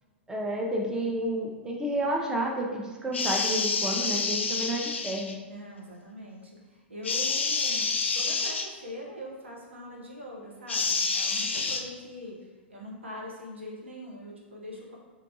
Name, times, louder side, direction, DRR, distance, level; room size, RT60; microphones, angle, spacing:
voice 1, 0.3-5.3, right 1 dB, 10° right, -1 dB, 0.5 m, -30 dB
sound 1, 3.1-5.3 7.0-8.7 10.7-11.8, left 4 dB, 80° left, 0.4 m, -28 dB
voice 2, 5.4-15.0, left 1 dB, 85° right, -3 dB, 0.9 m, -42 dB
4.3 x 2.7 x 2.7 m, 1.3 s
figure-of-eight pair, 105°, 6 cm